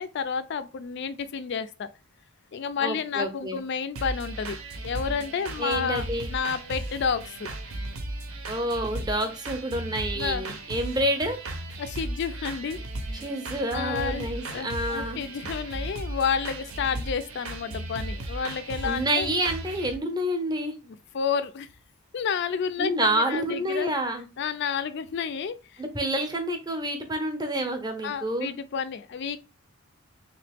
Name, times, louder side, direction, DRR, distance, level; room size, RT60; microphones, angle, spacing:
voice 1, 0.0-1.9 2.5-4.6 4.8-7.5 10.1-10.5 11.8-12.8 13.7-19.3 20.8-21.7 22.1-23.9 24.4-25.8 28.0-29.4, left 6 dB, 50° left, 0.3 m, -30 dB
voice 2, 2.8-3.6 5.6-6.3 8.5-11.4 13.2-15.2 18.8-20.7 22.8-24.3 25.8-28.5, right 1 dB, 20° right, 0.6 m, -28 dB
sound 1, 4.0-19.9, right 1 dB, 70° right, 0.7 m, -36 dB
3.1 x 2.9 x 3.4 m
head